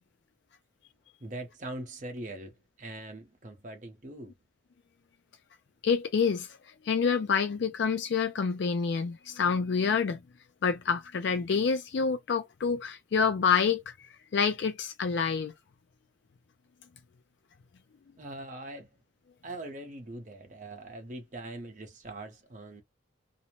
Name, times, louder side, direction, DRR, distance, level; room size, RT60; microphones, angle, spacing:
voice 1, 1.2-4.3 18.2-19.0 19.4-22.8, right 1 dB, 40° right, 0.8 m, -42 dB
voice 2, 5.8-6.6 6.8-10.2 10.6-15.5, left 6 dB, 65° left, 0.4 m, -27 dB
2.6 x 2.0 x 2.9 m
head